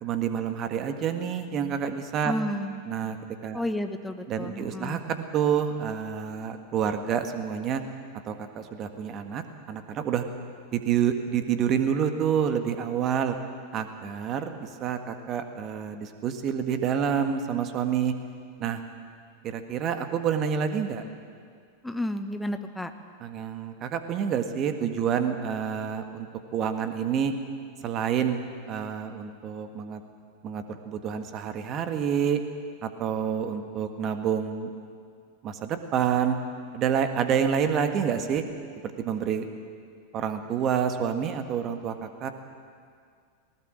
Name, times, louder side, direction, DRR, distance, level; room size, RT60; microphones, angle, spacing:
voice 1, 0.0-2.3 2.9-3.2 3.4-3.6 4.3-7.8 8.3-10.2 10.7-13.4 13.7-18.1 18.6-18.8 19.4-21.0 23.2-26.3 26.5-27.3 27.8-30.0 30.4-32.4 32.8-34.7 35.4-36.4 36.7-38.4 38.8-39.4 40.1-42.3, right 8 dB, 30° right, 7 dB, 1.7 m, -28 dB
voice 2, 2.2-2.8 3.5-5.0 21.8-22.9, left 1 dB, 5° left, 7 dB, 1.3 m, -31 dB
19.0 x 18.5 x 7.5 m, 2.2 s
figure-of-eight pair, 90°, 0 cm